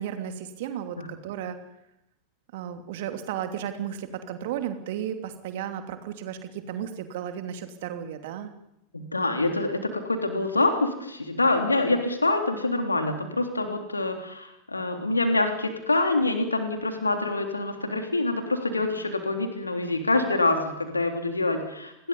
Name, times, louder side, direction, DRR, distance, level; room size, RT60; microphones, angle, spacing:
voice 1, 0.0-1.6 2.5-8.5, right 9 dB, 50° right, 7 dB, 2.9 m, -34 dB
voice 2, 8.9-22.1, left 2 dB, 80° left, 5 dB, 3.5 m, -26 dB
29.0 x 21.0 x 5.5 m, 0.85 s
figure-of-eight pair, 90°, 0 cm